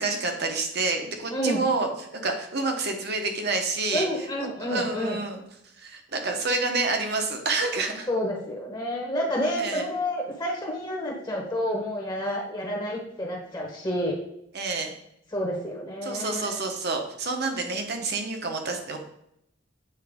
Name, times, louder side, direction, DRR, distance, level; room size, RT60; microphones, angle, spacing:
voice 1, 0.0-5.4 5.8-8.1 9.6-9.9 14.5-14.9 16.0-19.0, right 3 dB, 55° right, 4 dB, 1.1 m, -28 dB
voice 2, 1.3-1.6 3.9-5.2 8.1-14.2 15.3-16.5, equal, 20° left, -1 dB, 1.1 m, -29 dB
8.3 x 4.4 x 3.6 m, 0.78 s
head